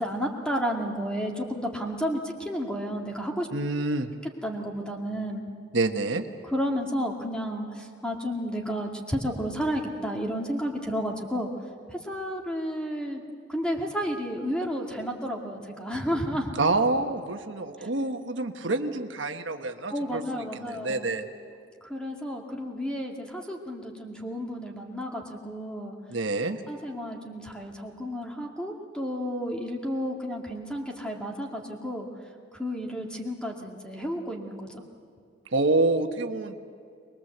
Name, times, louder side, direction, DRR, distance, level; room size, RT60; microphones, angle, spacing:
voice 1, 0.0-3.5 4.4-5.4 6.5-11.5 11.9-13.2 13.5-16.5 19.9-21.1 21.9-25.9 26.7-32.1 32.5-34.8, equal, 5° left, 0 dB, 2.3 m, -32 dB
voice 2, 3.5-4.1 5.7-6.3 16.5-21.3 26.1-26.6 35.5-36.5, right 2 dB, 80° right, 6 dB, 1.3 m, -27 dB
22.5 x 22.0 x 8.0 m, 2.4 s
head